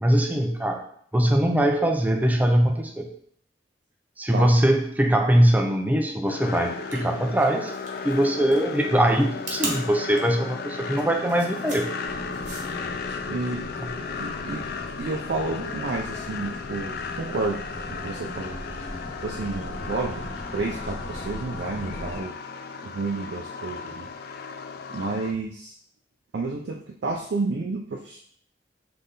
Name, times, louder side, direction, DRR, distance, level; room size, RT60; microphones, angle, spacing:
voice 1, 0.0-0.8 1.1-3.1 4.2-7.7 8.0-11.9, right 1 dB, 10° right, 3 dB, 0.5 m, -22 dB
sound 1, 6.3-25.3, left 5 dB, 55° left, 0.4 m, -35 dB
sound 2, 6.7-12.9, right 2 dB, 45° right, 1.1 m, -37 dB
sound 3, 12.0-22.2, left 1 dB, 80° left, 0.8 m, -39 dB
voice 2, 13.3-13.7 14.2-14.7 15.0-18.8 19.2-22.4 22.8-24.1 24.9-25.7 26.3-28.2, right 3 dB, 65° right, 0 dB, 0.4 m, -31 dB
3.6 x 3.3 x 3.9 m, 0.62 s
head